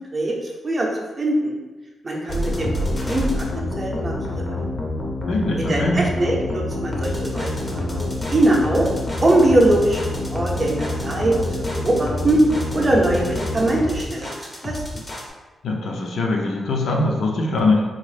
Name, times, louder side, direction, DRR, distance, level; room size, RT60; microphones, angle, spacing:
voice 1, 1.2-1.5 2.0-2.7 3.0-3.5 3.8-4.1 5.6-7.9 8.3-8.9 9.2-10.0 10.3-12.4 12.7-14.3 14.6-14.8, right 1 dB, 30° right, -2 dB, 0.6 m, -21 dB
sound 1, 2.3-15.3, left 1 dB, 25° left, 0.6 m, -27 dB
voice 2, 5.3-6.0 15.6-17.8, left 2 dB, 75° left, -1 dB, 0.5 m, -22 dB
3.8 x 2.0 x 3.1 m, 1.2 s
wide cardioid pair, 140°, 0 cm